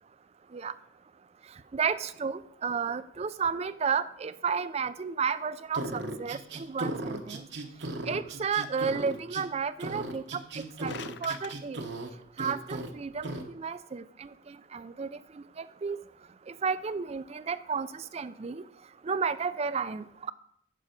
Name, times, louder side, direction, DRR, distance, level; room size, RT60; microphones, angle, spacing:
voice 1, 1.7-7.5 8.1-10.9 11.2-11.8 12.4-16.0 16.5-18.6 19.0-20.3, right 6 dB, 30° right, 14 dB, 0.4 m, -32 dB
sound 1, 5.7-9.5 9.8-12.1 12.4-12.9 13.2-13.5, right 2 dB, 60° right, 1.0 m, -36 dB
sound 2, 10.4-11.6, left 9 dB, 60° left, 0.4 m, -44 dB
10.0 x 6.2 x 5.1 m, 0.74 s
head